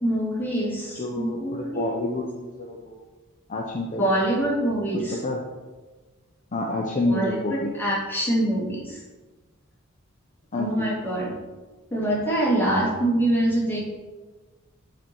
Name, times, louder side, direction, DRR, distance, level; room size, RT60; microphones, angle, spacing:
voice 1, 0.0-2.0 4.0-5.2 7.1-9.0 10.6-11.3 11.9-13.8, right 1 dB, 10° left, -7 dB, 2.4 m, -25 dB
voice 2, 1.0-3.0 3.5-4.0 4.9-5.4 6.5-7.7 10.5-10.9, left 2 dB, 35° left, -1 dB, 0.7 m, -28 dB
8.7 x 4.3 x 4.6 m, 1.3 s
head